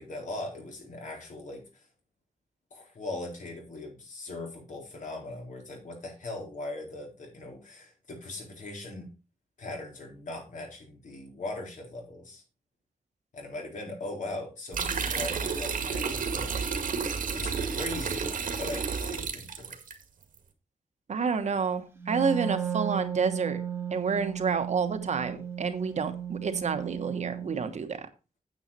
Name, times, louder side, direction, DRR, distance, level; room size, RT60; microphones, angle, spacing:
voice 1, 0.0-1.8 2.7-9.1 9.6-12.4 13.3-18.3 18.6-19.8, left 2 dB, 70° left, 1 dB, 4.1 m, -40 dB
sound 1, 14.7-19.9, right 5 dB, 80° right, 1.9 m, -31 dB
voice 2, 21.1-23.6 23.9-28.0, right 5 dB, 55° right, 8 dB, 1.3 m, -29 dB
Wind instrument woodwind instrument, 22.0-27.7, right 9 dB, 15° right, 1.7 m, -34 dB
9.2 x 8.2 x 4.3 m, 0.29 s
wide cardioid pair, 170°, 14 cm